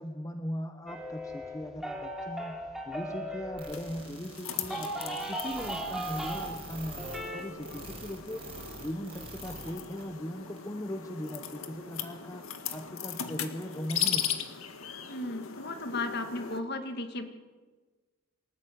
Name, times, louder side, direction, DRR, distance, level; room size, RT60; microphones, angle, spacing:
voice 1, 0.0-2.6 2.8-7.0 7.3-8.5 8.8-14.5, equal, 15° left, 7 dB, 0.9 m, -39 dB
sound 1, 0.9-4.1 4.5-6.7 6.9-7.4, right 1 dB, ahead, 3.1 m, -37 dB
sound 2, 3.6-9.7 10.0-10.1 10.6-10.7, right 3 dB, 25° right, 6.1 m, -44 dB
sound 3, 3.7-16.6, left 8 dB, 80° left, 1.8 m, -38 dB
voice 2, 15.1-17.3, left 2 dB, 50° left, 7 dB, 2.1 m, -35 dB
26.0 x 14.0 x 9.3 m, 1.4 s
head